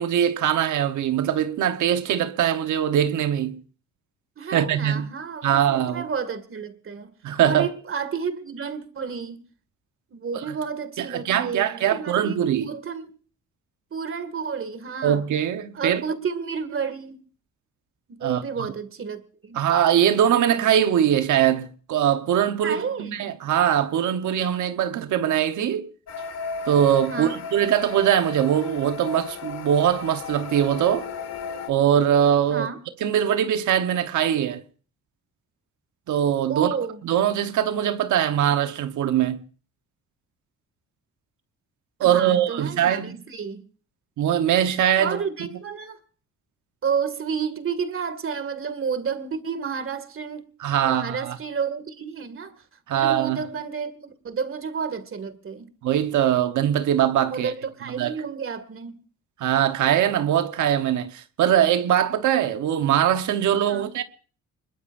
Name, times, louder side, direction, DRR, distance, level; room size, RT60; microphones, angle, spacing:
voice 1, 0.0-3.6 4.5-5.1 5.4-6.1 7.2-7.7 11.0-12.7 15.0-16.0 18.2-18.4 19.5-25.9 26.7-31.1 31.7-32.7 33.0-34.6 36.1-36.7 37.0-39.4 42.0-43.2 44.2-45.2 50.6-51.4 52.9-53.4 55.8-57.5 58.0-58.1 59.4-64.0, right 10 dB, 75° right, 1.2 m, -22 dB
voice 2, 4.4-7.1 7.4-9.4 10.1-13.0 13.9-15.2 15.7-17.2 18.1-19.6 22.6-23.2 27.1-27.4 32.5-32.8 36.5-37.0 42.0-43.6 45.0-46.0 46.8-50.5 50.8-52.6 52.9-55.7 57.3-58.9 63.7-63.9, right 6 dB, 45° right, 2.3 m, -31 dB
sound 1, 26.1-31.7, left 5 dB, 60° left, 1.9 m, -35 dB
24.5 x 21.5 x 2.6 m
cardioid pair, 90°, 30 cm